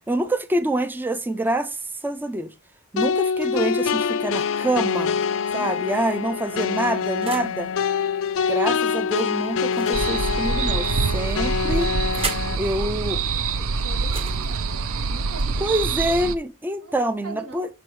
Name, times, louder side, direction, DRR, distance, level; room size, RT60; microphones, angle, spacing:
voice 1, 0.1-2.5 2.9-5.2 5.5-7.7 8.5-11.9 12.6-13.2 15.6-17.7, right 1 dB, 10° right, 0.3 m, -26 dB
sound 1, 3.0-12.6, left 6 dB, 65° left, 0.4 m, -25 dB
sound 2, 4.5-5.2 6.0-7.6 9.6-10.8 11.6-12.6 14.0-15.9, right 3 dB, 25° right, 1.0 m, -37 dB
voice 2, 5.5-6.0 6.2-7.2 7.6-7.8 12.1-16.2 16.8-17.7, right 2 dB, 90° right, 2.2 m, -43 dB
sound 3, 9.9-16.4, right 4 dB, 65° right, 0.5 m, -25 dB
6.0 x 4.7 x 4.6 m
head